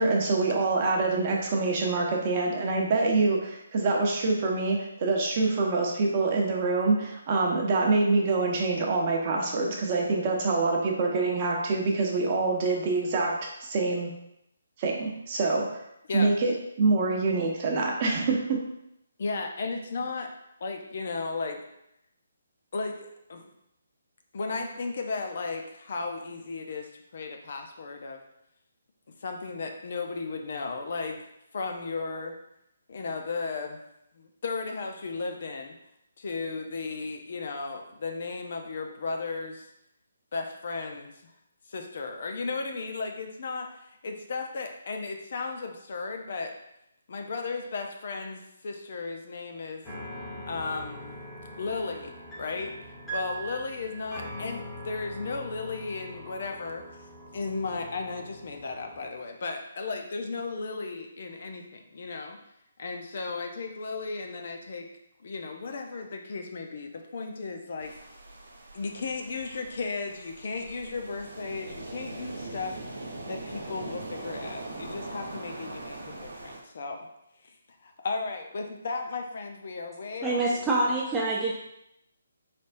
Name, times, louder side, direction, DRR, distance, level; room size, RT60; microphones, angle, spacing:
voice 1, 0.0-13.3 13.6-14.1 14.8-15.8 16.1-18.6, right 3 dB, 40° right, 0 dB, 0.8 m, -25 dB
voice 2, 19.2-20.3 20.6-21.6 22.7-23.5 24.3-28.2 29.2-31.2 31.5-32.4 32.9-33.8 34.2-35.7 36.2-39.7 40.3-41.1 41.7-46.5 47.1-49.9 50.5-51.1 51.6-52.7 53.1-56.9 57.3-62.4 62.8-64.9 65.2-68.0 68.7-72.8 73.3-77.1 77.4-77.6 77.8-80.9, left 4 dB, 55° left, 4 dB, 0.6 m, -35 dB
sound 1, 49.8-59.1, equal, 10° left, 1.1 m, -42 dB
sound 2, 67.8-76.6, right 2 dB, 85° right, 1.0 m, -41 dB
voice 3, 80.2-81.5, right 2 dB, 10° right, -4 dB, 0.4 m, -26 dB
4.1 x 3.4 x 2.6 m, 0.81 s
figure-of-eight pair, 150°, 0 cm